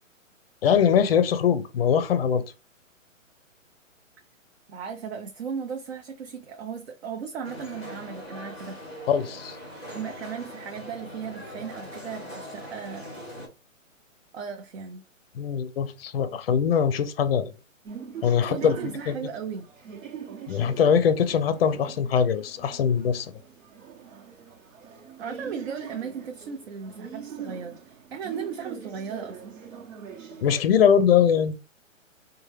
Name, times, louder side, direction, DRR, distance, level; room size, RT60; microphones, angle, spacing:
voice 1, 0.6-2.4 9.1-9.6 15.3-17.5 18.2-18.8 20.5-23.3 30.4-31.6, left 7 dB, 50° left, 0.5 m, -22 dB
voice 2, 4.7-8.8 9.9-13.1 14.3-15.0 18.4-19.6 25.2-29.4, right 6 dB, 50° right, 0.6 m, -36 dB
sound 1, 7.4-13.5, equal, 10° right, 0.5 m, -41 dB
sound 2, 17.8-30.6, right 7 dB, 70° right, 1.0 m, -43 dB
4.2 x 2.2 x 3.2 m
hypercardioid pair, 155°, 40 cm